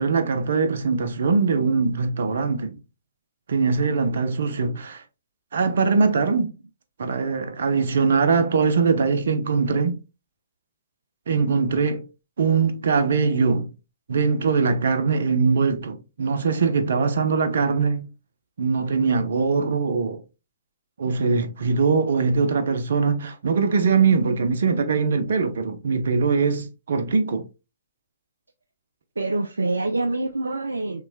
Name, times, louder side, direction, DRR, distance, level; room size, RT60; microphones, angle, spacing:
voice 1, 0.0-2.8 3.5-5.0 5.5-6.5 7.0-10.0 11.3-12.0 12.4-13.7 14.1-18.1 18.6-20.2 21.0-27.4, right 4 dB, 65° right, 0.8 m, -22 dB
voice 2, 29.2-31.1, right 2 dB, 85° right, 0.4 m, -26 dB
5.8 x 3.3 x 2.2 m
figure-of-eight pair, 125°, 0 cm